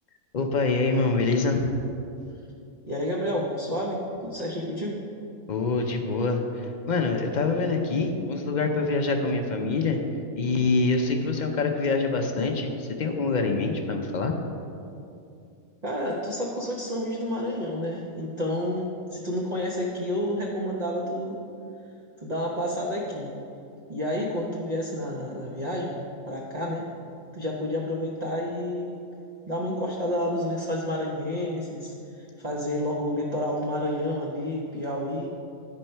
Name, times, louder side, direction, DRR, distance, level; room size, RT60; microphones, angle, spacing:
voice 1, 0.3-1.8 5.5-10.0 10.4-14.4, left 3 dB, 50° left, 3 dB, 0.5 m, -25 dB
voice 2, 2.9-5.0 15.8-21.4 22.2-23.3 23.9-26.0 26.2-26.9 27.3-29.0 29.5-35.3, left 1 dB, 35° right, -4 dB, 0.8 m, -30 dB
10.5 x 4.5 x 5.4 m, 2.6 s
omnidirectional pair, 1.5 m